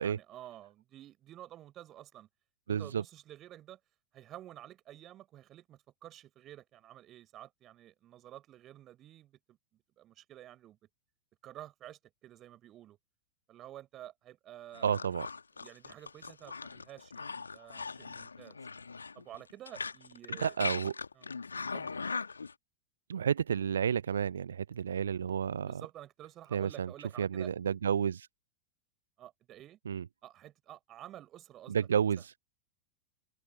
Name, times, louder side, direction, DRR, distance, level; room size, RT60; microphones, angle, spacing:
voice 1, 0.0-2.3 2.7-3.8 4.1-10.8 11.4-13.0 13.5-14.9 15.6-18.6 19.1-20.6 21.2-21.3 21.7-22.1 25.6-27.5 29.2-29.8 30.2-31.8, right 13 dB, 30° right, 5.8 m, -51 dB
voice 2, 2.7-3.0 14.8-15.3 20.4-20.9 23.1-25.8 26.5-26.9 27.2-28.3 29.9-30.0 31.7-32.3, right 8 dB, 70° right, 0.6 m, -31 dB
sound 1, 14.7-22.5, left 4 dB, 75° left, 1.7 m, -40 dB
open air
figure-of-eight pair, 90°, 0 cm